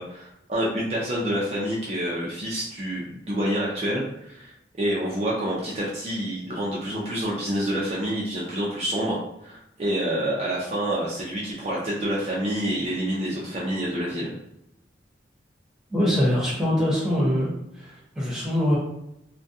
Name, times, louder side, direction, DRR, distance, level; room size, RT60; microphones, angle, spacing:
voice 1, 0.0-4.5 4.8-14.3, equal, 35° right, -5 dB, 0.4 m, -28 dB
voice 2, 15.9-18.8, equal, 5° right, -7 dB, 0.8 m, -23 dB
2.3 x 2.2 x 2.6 m, 0.82 s
head